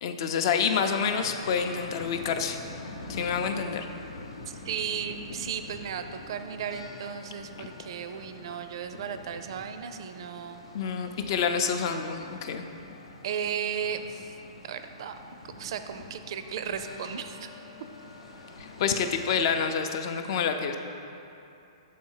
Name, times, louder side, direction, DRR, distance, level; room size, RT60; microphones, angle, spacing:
voice 1, 0.0-2.6 3.1-3.9 7.6-7.7 10.7-12.6 18.6-20.7, left 6 dB, 50° left, 6 dB, 0.5 m, -28 dB
sound 1, 0.9-19.5, left 2 dB, 85° left, 0.8 m, -45 dB
voice 2, 4.5-10.6 11.5-12.1 13.2-14.3 14.6-15.2 15.6-17.5, right 8 dB, 60° right, 9 dB, 0.4 m, -35 dB
6.4 x 4.2 x 5.5 m, 2.8 s
hypercardioid pair, 135°, 3 cm